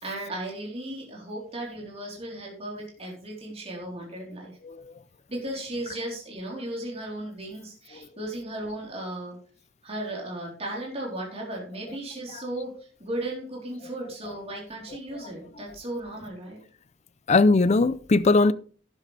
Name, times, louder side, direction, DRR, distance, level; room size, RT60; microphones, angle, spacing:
voice 1, 0.0-4.5 5.3-9.4 9.8-16.6, right 1 dB, 35° right, 3.9 m, -35 dB
voice 2, 17.3-18.5, left 3 dB, 35° left, 0.5 m, -20 dB
12.0 x 10.0 x 3.4 m
head